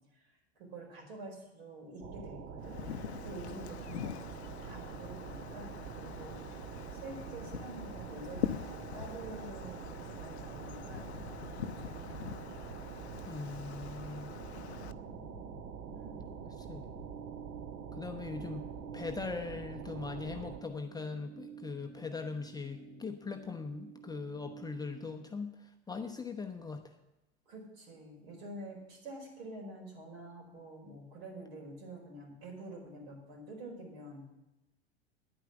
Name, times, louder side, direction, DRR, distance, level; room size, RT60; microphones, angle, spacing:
voice 1, 0.1-6.7 6.9-12.5 15.9-16.2 27.5-34.2, right 1 dB, 65° right, 0 dB, 4.9 m, -48 dB
sound 1, 2.0-20.6, right 6 dB, 40° right, 1.1 m, -45 dB
Wind, 2.6-14.9, left 10 dB, 70° left, 0.6 m, -44 dB
sound 2, 7.1-25.3, right 7 dB, 80° right, 3.4 m, -53 dB
voice 2, 13.3-14.3 16.6-16.9 17.9-18.7 18.9-27.0, left 4 dB, 10° left, 4 dB, 0.8 m, -40 dB
10.5 x 9.2 x 7.2 m, 0.97 s
figure-of-eight pair, 85°, 34 cm